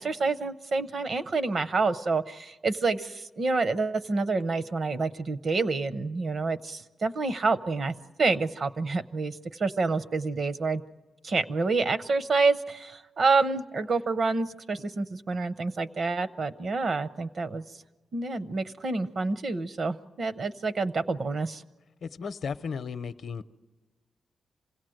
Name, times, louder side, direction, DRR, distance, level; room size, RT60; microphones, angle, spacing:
voice 1, 0.0-9.3 9.6-10.8 11.2-17.6 18.1-21.6, right 3 dB, 45° right, 13 dB, 0.7 m, -28 dB
voice 2, 22.0-23.4, left 6 dB, 65° left, 12 dB, 0.7 m, -35 dB
26.5 x 17.0 x 7.8 m, 1.2 s
wide cardioid pair, 135°, 0 cm